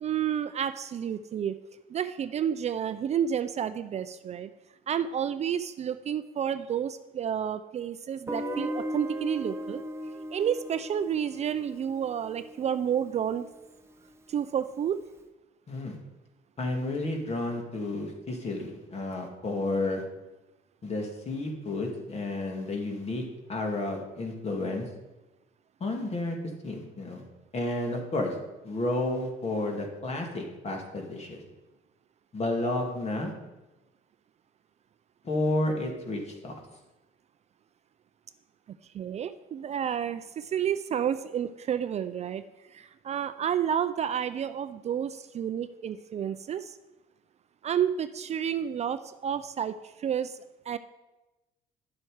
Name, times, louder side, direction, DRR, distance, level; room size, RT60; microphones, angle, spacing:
voice 1, 0.0-1.6 1.9-4.5 4.9-9.8 10.3-13.5 14.3-15.0 38.9-46.8 47.6-50.8, right 9 dB, 40° right, 12 dB, 0.4 m, -30 dB
Guitar, 8.3-13.1, equal, 15° right, 0.8 m, -37 dB
voice 2, 16.6-20.0 20.8-23.2 23.5-24.9 25.8-26.4 26.6-27.2 27.5-28.3 28.6-31.4 32.3-33.3 35.2-36.6, left 2 dB, 40° left, 2 dB, 2.2 m, -31 dB
10.5 x 7.7 x 4.9 m, 1.1 s
cardioid pair, 110°, 17 cm